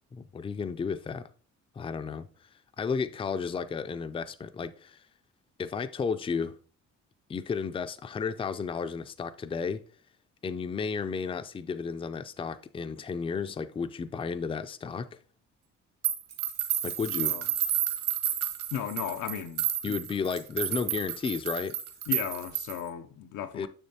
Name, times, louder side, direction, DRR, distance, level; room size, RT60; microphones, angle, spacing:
voice 1, 0.1-1.3 1.8-2.3 2.8-5.0 5.6-6.5 7.3-9.8 10.4-15.1 16.8-17.4 19.8-21.8 23.5-23.7, left 5 dB, 20° left, 0.4 m, -33 dB
sound 1, 16.0-22.9, right 11 dB, 55° right, 1.3 m, -31 dB
voice 2, 17.1-17.4 18.7-20.0 22.1-23.7, left 10 dB, 90° left, 0.6 m, -36 dB
6.7 x 6.2 x 2.8 m
cardioid pair, 90°, 30 cm